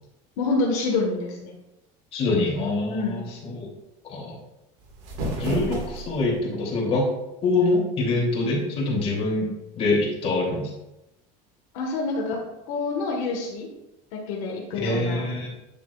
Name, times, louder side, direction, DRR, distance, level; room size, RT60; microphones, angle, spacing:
voice 1, 0.4-1.5 2.9-3.2 11.7-12.4 12.7-13.7 14.1-15.2, left 3 dB, 80° left, -1 dB, 1.5 m, -27 dB
voice 2, 2.1-3.7 4.1-4.4 5.4-7.0 7.4-9.5 9.8-10.7 14.8-15.5, left 2 dB, 35° left, -4 dB, 2.9 m, -25 dB
sound 1, 4.8-6.4, right 2 dB, 70° right, 1.9 m, -31 dB
9.2 x 7.0 x 2.4 m, 0.92 s
cardioid pair, 160°, 17 cm